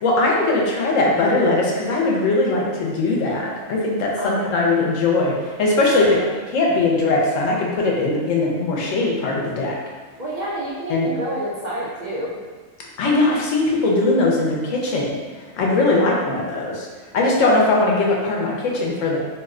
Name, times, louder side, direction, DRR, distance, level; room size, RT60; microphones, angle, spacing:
voice 1, 0.0-6.0 6.5-9.8 10.9-11.1 13.0-15.1 15.3-16.9 17.1-19.2, left 2 dB, 75° left, -2 dB, 1.0 m, -20 dB
voice 2, 4.2-4.5 5.7-6.4 10.2-12.3, right 1 dB, 80° right, -6 dB, 0.4 m, -29 dB
2.8 x 2.1 x 3.6 m, 1.4 s
omnidirectional pair, 1.4 m